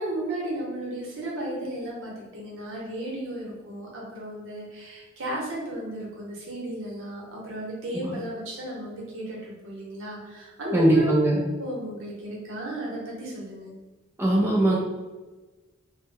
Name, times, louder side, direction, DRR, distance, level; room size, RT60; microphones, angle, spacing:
voice 1, 0.0-11.1 11.6-13.7, right 1 dB, 80° right, -4 dB, 0.9 m, -34 dB
voice 2, 10.7-11.5 14.2-14.8, right 1 dB, 10° right, -4 dB, 0.3 m, -21 dB
2.1 x 2.1 x 3.3 m, 1.2 s
head